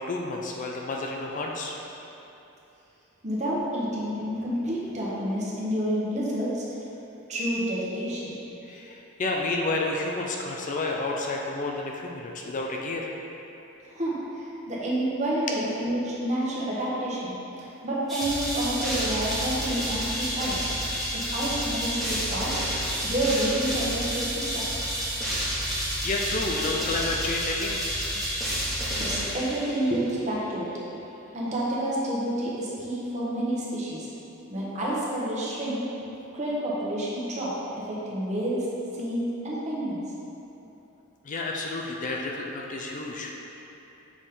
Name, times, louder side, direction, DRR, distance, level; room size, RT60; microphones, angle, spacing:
voice 1, 0.0-1.8 8.7-13.1 25.5-27.9 41.2-43.3, left 2 dB, 40° left, 0 dB, 0.5 m, -30 dB
voice 2, 3.2-6.6 7.3-8.3 13.8-17.3 17.8-20.7 21.1-22.6 23.0-24.6 29.0-30.7 31.3-34.1 34.5-35.8 36.3-37.5 37.9-38.7 38.9-40.0, right 1 dB, 35° right, -6 dB, 1.2 m, -29 dB
sound 1, 18.1-30.0, equal, ahead, 1.2 m, -30 dB
7.1 x 4.2 x 3.7 m, 3.0 s
head